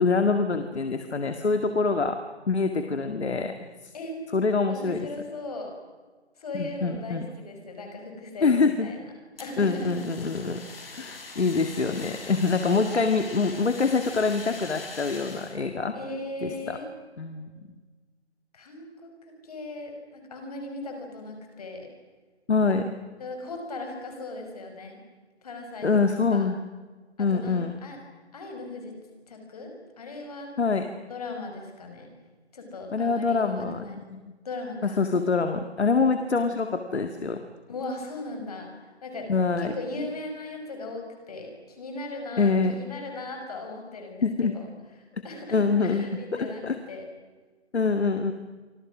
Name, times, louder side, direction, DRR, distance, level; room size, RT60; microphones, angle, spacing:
voice 1, 0.0-2.2 2.5-3.7 4.3-5.1 6.5-7.3 8.4-8.9 9.6-10.6 11.0-15.9 16.4-16.8 17.2-17.5 22.5-22.9 25.8-26.6 27.2-27.8 30.6-30.8 32.9-34.2 34.8-37.4 39.3-39.7 42.4-42.8 44.2-44.5 45.5-46.8 47.7-48.3, left 4 dB, 70° left, 7 dB, 2.1 m, -25 dB
voice 2, 4.7-5.7 6.4-9.0 9.4-10.1 15.9-16.9 18.5-19.1 19.4-21.9 23.2-25.0 25.4-25.9 26.3-26.5 27.2-28.0 28.3-28.9 29.3-30.5 31.1-32.1 32.5-34.0 34.4-35.0 37.7-39.3 39.6-44.3 44.5-44.7 45.2-47.0, left 2 dB, 35° left, 3 dB, 5.6 m, -38 dB
Fire, 9.4-15.6, left 3 dB, 55° left, 5.9 m, -42 dB
29.0 x 25.5 x 6.2 m, 1.4 s
figure-of-eight pair, 165°, 34 cm